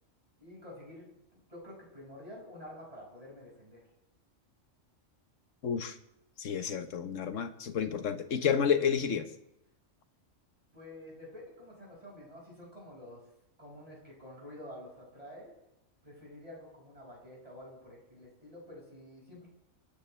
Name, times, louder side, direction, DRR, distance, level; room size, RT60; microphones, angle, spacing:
voice 1, 0.4-3.9 10.7-13.3 13.6-15.5 16.0-19.5, left 1 dB, 25° right, -4 dB, 5.8 m, -49 dB
voice 2, 5.6-5.9 6.4-9.3, left 7 dB, 70° left, 8 dB, 1.4 m, -30 dB
26.5 x 10.0 x 3.3 m, 0.86 s
omnidirectional pair, 1.4 m